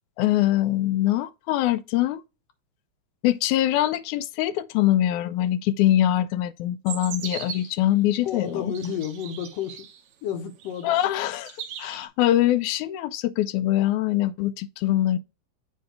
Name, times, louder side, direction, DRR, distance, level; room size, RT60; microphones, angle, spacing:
voice 1, 0.2-2.2 3.2-8.7 10.8-11.5 11.8-15.2, left 13 dB, 85° left, 2.0 m, -23 dB
sound 1, 6.9-7.8 8.5-10.0 10.6-11.0 11.3-12.1, right 9 dB, 75° right, 2.1 m, -38 dB
voice 2, 8.2-9.9 10.2-11.0, left 8 dB, 70° left, 1.7 m, -31 dB
7.8 x 2.7 x 5.0 m
omnidirectional pair, 3.4 m